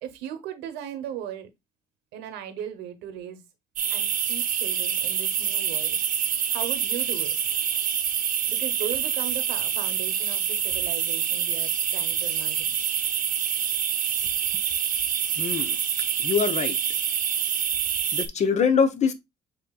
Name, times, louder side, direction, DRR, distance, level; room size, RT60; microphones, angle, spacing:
voice 1, 0.0-1.5 2.1-3.4 3.9-6.0 6.5-7.4 8.5-12.7, right 10 dB, 90° right, 1.0 m, -37 dB
sound 1, 3.8-18.3, right 8 dB, 55° right, 0.8 m, -26 dB
voice 2, 15.4-15.8 16.2-16.7 18.1-19.1, left 6 dB, 45° left, 0.7 m, -23 dB
7.5 x 2.9 x 2.3 m
cardioid pair, 110°, 17 cm